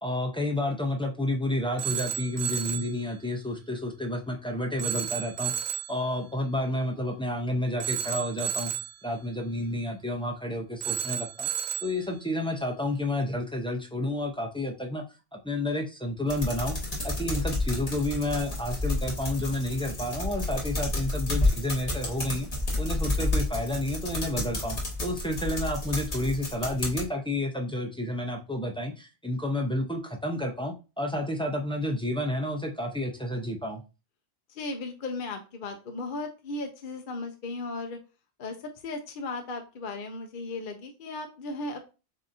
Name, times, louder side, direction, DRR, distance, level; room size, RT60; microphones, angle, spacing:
voice 1, 0.0-5.5 5.9-8.7 9.0-11.5 11.8-15.0 15.3-16.8 17.0-22.5 22.8-33.8, left 1 dB, 5° left, 1 dB, 0.4 m, -30 dB
Telephone, 1.8-2.9 4.8-6.0 7.8-9.0 10.8-12.0, right 9 dB, 40° right, 0.6 m, -32 dB
sound 1, 16.3-27.0, left 2 dB, 35° left, 1.4 m, -30 dB
voice 2, 34.5-38.0 38.4-41.8, left 2 dB, 55° left, 5 dB, 0.8 m, -36 dB
7.3 x 2.7 x 2.6 m, 0.31 s
omnidirectional pair, 1.1 m